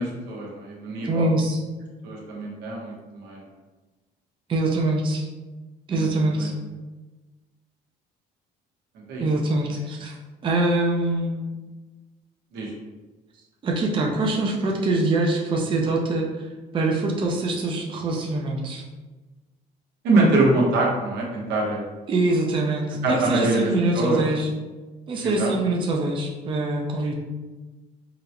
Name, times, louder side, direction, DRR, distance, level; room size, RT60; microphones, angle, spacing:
voice 1, 0.0-1.3 2.0-3.4 5.9-6.1 6.4-6.5 9.1-9.3 12.5-12.7 20.0-21.8 23.0-24.2 25.2-25.5, right 2 dB, 85° right, -3 dB, 0.9 m, -24 dB
voice 2, 1.0-1.6 4.5-5.3 5.9-6.5 9.2-10.1 10.4-11.4 13.6-16.4 16.7-18.8 22.1-24.5 25.1-27.1, right 2 dB, 30° right, -1 dB, 0.5 m, -24 dB
3.7 x 2.0 x 2.8 m, 1.2 s
cardioid pair, 110°, 17 cm